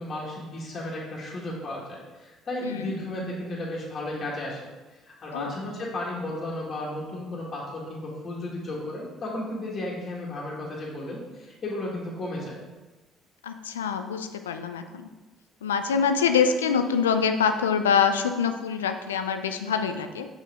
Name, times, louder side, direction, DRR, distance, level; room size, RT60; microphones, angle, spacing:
voice 1, 0.0-4.7 5.0-12.6, left 1 dB, 45° left, -4 dB, 1.9 m, -34 dB
voice 2, 13.4-15.1 15.6-20.3, left 6 dB, 90° left, 8 dB, 0.4 m, -25 dB
6.0 x 5.5 x 3.7 m, 1.2 s
hypercardioid pair, 55°, 0 cm